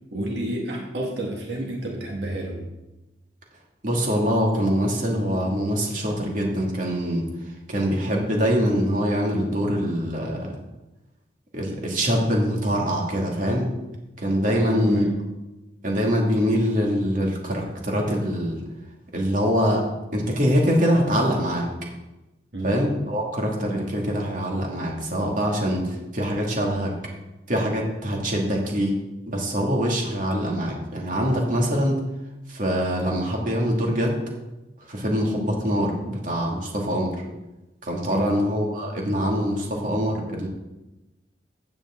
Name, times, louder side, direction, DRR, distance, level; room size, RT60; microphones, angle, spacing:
voice 1, 0.1-2.6 14.5-15.3 22.5-22.7 38.1-38.4, right 1 dB, 70° right, -1 dB, 1.9 m, -30 dB
voice 2, 3.8-7.2 7.7-10.6 11.5-13.7 14.2-15.0 15.8-18.6 19.1-21.7 22.6-27.0 27.5-29.0 29.3-32.0 32.5-34.2 34.9-37.2 37.8-40.5, equal, 45° right, -1 dB, 2.4 m, -24 dB
15.5 x 8.8 x 3.8 m, 1.0 s
head